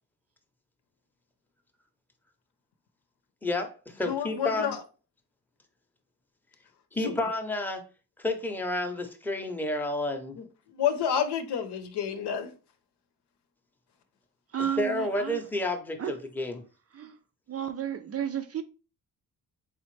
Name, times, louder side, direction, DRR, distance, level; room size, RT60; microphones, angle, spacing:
voice 1, 3.4-4.7 6.9-7.8 8.2-10.4 14.8-16.6, left 1 dB, 5° left, 0.6 m, -30 dB
voice 2, 4.1-4.8 7.0-7.1 10.4-10.5 10.7-12.5, left 8 dB, 80° left, 0.8 m, -29 dB
voice 3, 14.5-15.4 16.0-16.1 16.9-17.2 17.5-18.6, right 9 dB, 40° right, 0.4 m, -32 dB
4.2 x 3.4 x 3.1 m
cardioid pair, 110°, 40 cm